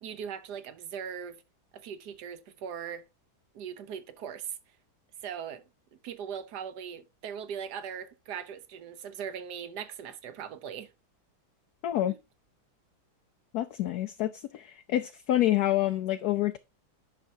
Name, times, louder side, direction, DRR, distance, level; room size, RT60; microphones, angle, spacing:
voice 1, 0.0-1.4 1.7-3.0 3.5-4.6 5.2-5.6 6.0-10.9 12.1-12.2, right 8 dB, 65° right, 1.3 m, -39 dB
voice 2, 11.8-12.1 13.5-16.6, left 13 dB, 70° left, 0.9 m, -27 dB
10.0 x 6.0 x 2.7 m
omnidirectional pair, 2.1 m